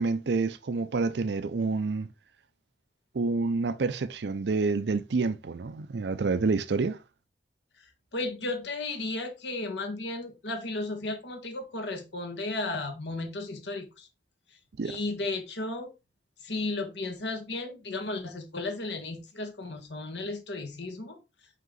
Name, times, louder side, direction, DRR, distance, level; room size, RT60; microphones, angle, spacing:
voice 1, 0.0-2.1 3.1-7.0 14.8-15.0, right 4 dB, 80° right, 0.5 m, -28 dB
voice 2, 8.1-14.1 14.8-15.9 16.4-21.2, left 2 dB, 90° left, 1.6 m, -34 dB
5.4 x 5.1 x 3.9 m
head